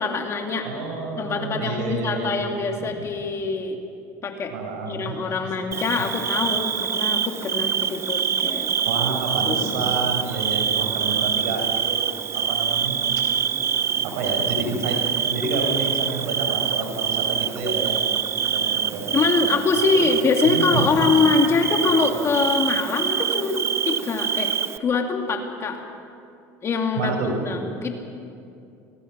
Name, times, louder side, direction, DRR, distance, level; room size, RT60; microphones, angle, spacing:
voice 1, 0.0-0.7 1.2-3.8 4.2-4.5 4.9-8.7 9.4-9.8 19.1-24.5 24.8-25.8 26.6-27.1 27.5-28.0, left 4 dB, 35° left, 3 dB, 2.5 m, -24 dB
voice 2, 0.6-2.4 2.8-3.0 4.5-5.2 8.8-12.1 12.3-13.0 14.0-15.0 15.2-18.0 18.5-19.2 19.7-20.1 20.4-20.9 26.9-27.3, right 3 dB, 85° right, 3 dB, 5.1 m, -29 dB
Bird / Cricket, 5.7-24.8, right 7 dB, 35° right, 0.7 m, -25 dB
25.0 x 20.0 x 6.1 m, 2.5 s
supercardioid pair, 100°, 8 cm